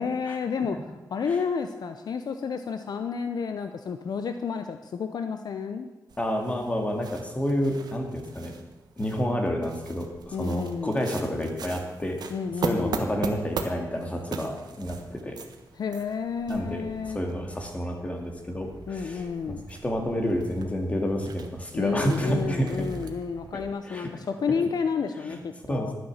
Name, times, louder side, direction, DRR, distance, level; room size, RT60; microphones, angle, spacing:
voice 1, 0.0-5.9 10.3-11.0 12.3-13.0 15.7-17.2 18.9-19.7 21.7-25.9, left 6 dB, 70° left, 8 dB, 0.7 m, -31 dB
sound 1, 6.1-23.7, right 5 dB, 70° right, 1.4 m, -40 dB
voice 2, 6.2-8.5 9.0-12.2 12.6-15.4 16.5-16.9 17.1-19.3 19.7-23.0 23.5-24.1 25.3-25.4 25.7-25.9, equal, 20° left, 3 dB, 2.3 m, -29 dB
12.0 x 9.8 x 7.3 m, 1.1 s
wide cardioid pair, 150°, 7 cm